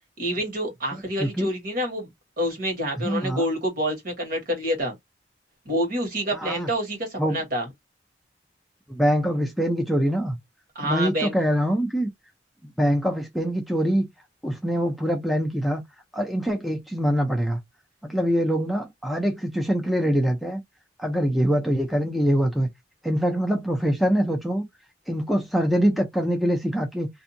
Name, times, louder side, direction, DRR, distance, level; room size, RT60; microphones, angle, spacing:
voice 1, 0.2-2.1 2.4-4.9 5.6-7.7 10.7-11.3, equal, 50° right, 1.4 m, -27 dB
voice 2, 3.0-3.5 6.3-6.7 7.2-7.4 8.9-10.4 10.8-12.1 12.8-14.1 14.4-15.8 16.1-17.6 18.0-20.6 21.0-22.7 23.0-24.7 25.1-27.1, equal, ahead, 0.5 m, -24 dB
2.6 x 2.3 x 2.7 m
head